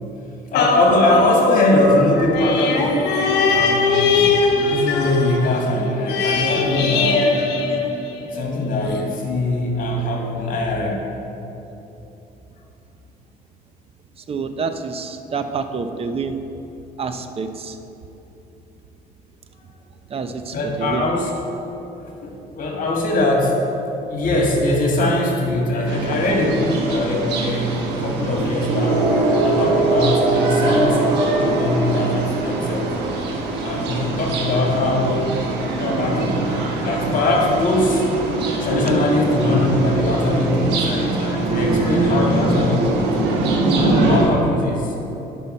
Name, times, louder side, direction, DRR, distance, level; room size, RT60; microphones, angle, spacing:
sound 1, 0.5-8.4 8.9-9.0, left 4 dB, 80° left, 0.9 m, -21 dB
voice 1, 0.5-3.2 3.5-7.3 8.3-11.0 20.5-21.3 22.0-23.6 24.1-29.0 29.4-32.9 33.6-35.3 35.8-43.2 43.7-44.9, left 1 dB, 55° left, 0 dB, 1.7 m, -21 dB
sound 2, 1.7-10.1, left 3 dB, 20° right, 1.6 m, -39 dB
voice 2, 14.3-16.4 17.0-17.8 20.1-21.1 26.2-26.5, right 5 dB, 35° right, 8 dB, 0.6 m, -28 dB
sound 3, 25.9-44.2, right 2 dB, 85° right, 1.2 m, -22 dB
11.0 x 5.6 x 4.3 m, 3.0 s
cardioid pair, 110°, 17 cm